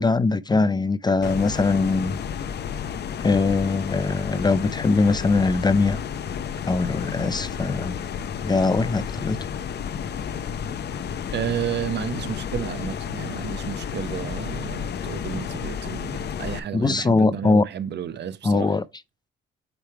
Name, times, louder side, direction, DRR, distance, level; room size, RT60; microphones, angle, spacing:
voice 1, 0.0-2.2 3.2-6.0 6.7-8.0 8.4-9.4 16.7-17.6 18.4-18.8, left 3 dB, 20° left, 0.5 m, -21 dB
sound 1, 1.2-16.6, left 7 dB, 55° left, 0.8 m, -31 dB
voice 2, 11.3-18.7, right 9 dB, 60° right, 0.9 m, -31 dB
8.8 x 3.3 x 4.6 m
cardioid pair, 90°, 20 cm